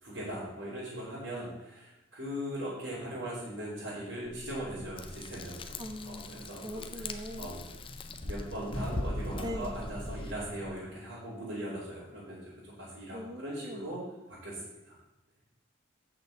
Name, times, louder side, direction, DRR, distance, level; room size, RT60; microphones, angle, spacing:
voice 1, 0.0-6.8 7.4-7.6 8.2-14.0 14.3-15.0, equal, 65° right, -10 dB, 3.4 m, -40 dB
sound 1, 4.2-10.7, equal, 75° left, 2.0 m, -42 dB
Frying (food), 5.0-10.3, left 3 dB, 25° left, 0.5 m, -43 dB
voice 2, 5.8-7.5 9.4-9.8 13.1-13.9, equal, 20° right, 7 dB, 0.7 m, -41 dB
7.9 x 6.6 x 7.2 m, 0.99 s
head